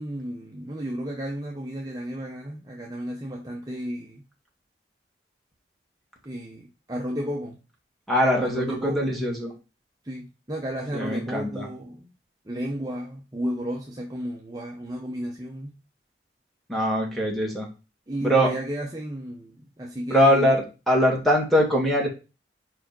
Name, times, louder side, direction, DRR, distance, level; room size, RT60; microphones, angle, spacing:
voice 1, 0.0-4.2 6.2-7.6 8.4-9.2 10.0-12.1 12.5-15.7 18.1-20.5, equal, 20° right, 0.9 m, -33 dB
voice 2, 8.1-9.5 10.9-11.7 16.7-17.7 18.2-18.5 20.1-22.1, equal, ahead, 2.2 m, -22 dB
5.1 x 4.8 x 6.1 m
head